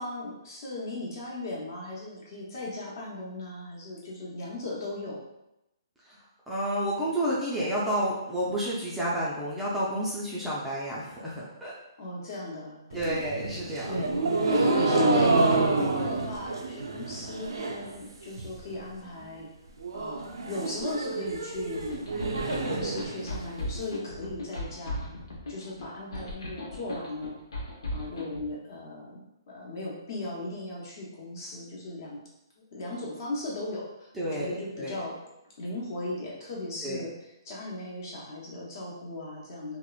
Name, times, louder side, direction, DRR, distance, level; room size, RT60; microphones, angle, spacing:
voice 1, 0.0-5.2 12.0-13.3 13.9-14.1 14.5-19.5 19.9-22.0 22.5-25.2 25.5-27.4 27.9-32.2 32.7-35.2 35.6-39.8, left 2 dB, 50° left, -4 dB, 0.9 m, -36 dB
voice 2, 6.5-11.7 12.9-14.1 34.2-35.0 36.8-37.1, right 1 dB, 5° right, -8 dB, 0.4 m, -30 dB
sound 1, 12.9-17.9 18.2-18.8 19.1-19.2 19.4-19.5 19.8-23.8, right 3 dB, 85° right, 0.4 m, -28 dB
sound 2, 21.7-28.4, left 1 dB, 85° left, 0.8 m, -37 dB
2.9 x 2.0 x 2.3 m, 0.88 s
hypercardioid pair, 150°, 2 cm